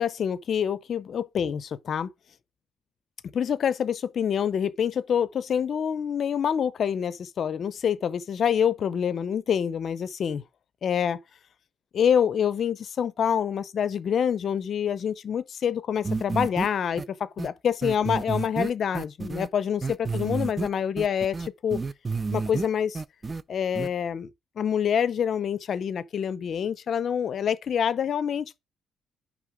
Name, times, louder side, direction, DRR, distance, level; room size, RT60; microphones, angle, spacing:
voice 1, 0.0-2.1 3.3-10.4 10.8-11.2 11.9-21.8 22.3-23.0 23.5-24.3 24.6-28.6, left 8 dB, 55° left, 0.6 m, -26 dB
sound 1, 16.0-16.7 17.0-17.1 17.4-17.5 17.8-19.5 19.8-20.7 21.0-22.7 22.9-23.4 23.7-23.9, right 4 dB, 25° right, 0.4 m, -30 dB
10.0 x 3.6 x 4.8 m
cardioid pair, 90°, 0 cm